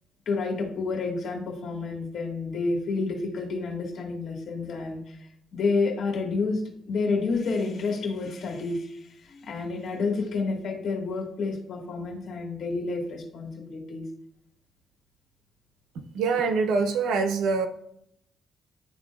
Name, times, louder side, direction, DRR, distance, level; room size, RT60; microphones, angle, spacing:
voice 1, 0.3-5.3 5.5-6.6 6.9-14.0, left 4 dB, 65° left, 1 dB, 2.0 m, -29 dB
voice 2, 16.1-17.7, right 4 dB, 85° right, 7 dB, 0.9 m, -24 dB
11.0 x 3.8 x 2.4 m, 0.71 s
cardioid pair, 90°, 0 cm